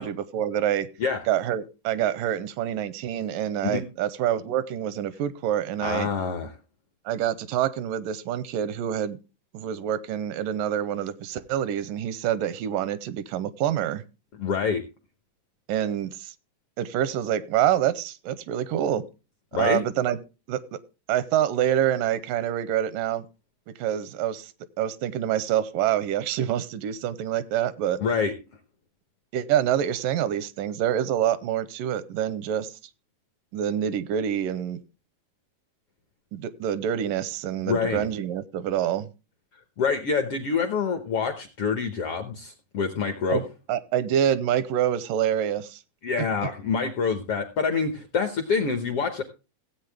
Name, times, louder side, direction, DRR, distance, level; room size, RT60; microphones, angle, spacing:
voice 1, 0.0-0.9 1.3-6.1 7.1-9.2 9.5-14.0 15.7-16.3 16.8-19.0 19.5-20.2 20.5-20.8 21.1-23.3 23.8-24.5 24.8-28.0 29.3-32.7 33.5-34.8 36.3-39.1 43.3-43.4 43.7-45.8 46.2-46.3, right 10 dB, 85° right, 15 dB, 2.3 m, -26 dB
voice 2, 5.8-6.5 14.4-14.8 19.5-19.8 28.0-28.3 37.7-38.1 39.8-43.4 46.0-49.2, left 5 dB, 70° left, 7 dB, 1.4 m, -26 dB
16.5 x 8.2 x 3.4 m, 0.30 s
omnidirectional pair, 3.9 m